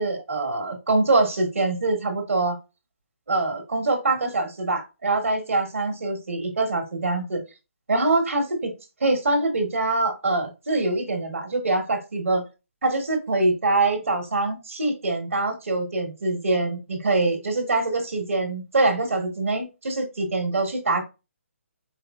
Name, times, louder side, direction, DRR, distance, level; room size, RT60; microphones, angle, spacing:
voice 1, 0.0-2.6 3.3-7.4 7.9-8.7 9.0-12.5 12.8-21.0, right 2 dB, 85° right, 4 dB, 1.4 m, -24 dB
4.7 x 3.3 x 2.4 m, 0.27 s
hypercardioid pair, 150°, 7 cm